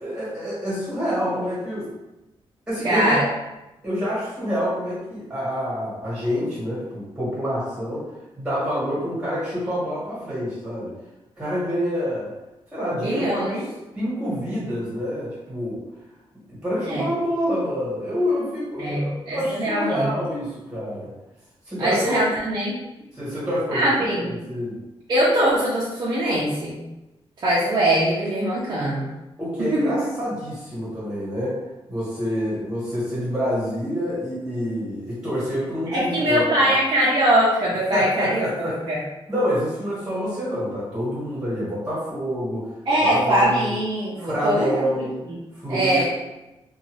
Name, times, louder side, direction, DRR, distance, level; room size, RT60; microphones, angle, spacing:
voice 1, 0.0-1.9 2.7-3.2 3.8-8.0 8.4-10.9 11.4-12.3 12.7-13.4 13.9-15.8 16.5-21.1 21.7-22.1 23.1-24.8 29.4-31.6 31.9-36.7 37.9-42.7 43.0-43.7 44.2-45.1 45.5-46.0, equal, 10° right, -9 dB, 1.4 m, -27 dB
voice 2, 2.8-3.2 13.0-13.7 16.8-17.1 18.8-20.2 21.8-22.7 23.7-24.4 25.1-26.8 27.4-29.1 29.7-29.9 35.9-39.0 42.9-45.4 45.7-46.0, right 1 dB, 45° right, -8 dB, 0.5 m, -22 dB
2.6 x 2.3 x 3.0 m, 1.0 s
wide cardioid pair, 165°, 10 cm